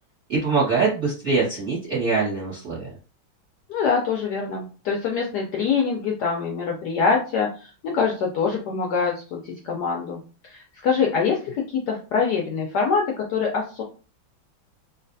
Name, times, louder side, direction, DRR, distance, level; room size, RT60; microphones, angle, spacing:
voice 1, 0.3-2.9, right 4 dB, 40° right, -9 dB, 1.2 m, -23 dB
voice 2, 3.7-13.8, left 5 dB, 75° left, 0 dB, 1.0 m, -24 dB
3.1 x 2.5 x 2.6 m, 0.36 s
omnidirectional pair, 2.2 m